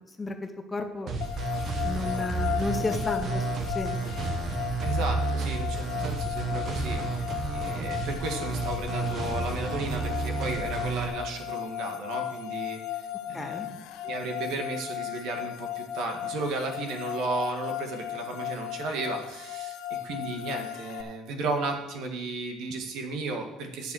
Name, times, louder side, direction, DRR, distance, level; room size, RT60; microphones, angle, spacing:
voice 1, 0.2-1.1 1.8-4.2 5.9-6.1 13.3-13.7, left 2 dB, 15° left, 5 dB, 0.8 m, -33 dB
sound 1, 1.1-11.1, right 3 dB, 40° right, 1.3 m, -31 dB
sound 2, 1.2-21.0, left 12 dB, 80° left, 0.7 m, -36 dB
voice 2, 4.8-13.6 14.0-19.8 20.0-23.9, right 3 dB, 65° right, 4 dB, 1.7 m, -34 dB
9.2 x 7.0 x 6.3 m, 0.94 s
cardioid pair, 160°, 0 cm